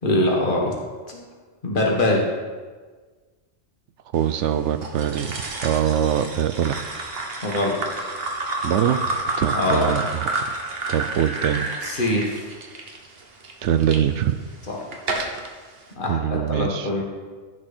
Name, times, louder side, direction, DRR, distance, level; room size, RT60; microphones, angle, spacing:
voice 1, 0.0-0.7 1.1-1.2 1.6-2.3 7.4-8.1 9.5-9.9 11.8-12.5 14.7-14.9 16.0-17.0, left 1 dB, 45° left, -1 dB, 1.9 m, -23 dB
voice 2, 4.1-5.3 5.6-6.9 8.6-9.0 9.4-10.3 10.9-11.7 13.6-14.4 16.1-16.9, right 10 dB, 80° right, 10 dB, 0.9 m, -23 dB
sound 1, 4.8-14.0 14.6-15.5, right 2 dB, 55° right, 1.4 m, -29 dB
15.5 x 6.4 x 4.4 m, 1.4 s
omnidirectional pair, 1.2 m